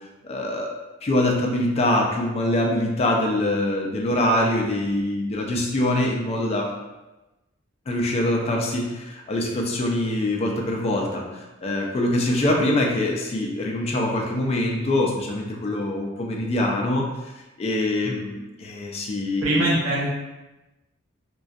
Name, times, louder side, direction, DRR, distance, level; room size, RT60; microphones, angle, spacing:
voice 1, 0.2-6.7 7.9-17.1 17.6-19.8, left 1 dB, 30° left, 0 dB, 0.3 m, -24 dB
voice 2, 19.4-20.1, right 1 dB, 90° right, -7 dB, 0.6 m, -24 dB
2.2 x 2.2 x 2.5 m, 1.1 s
head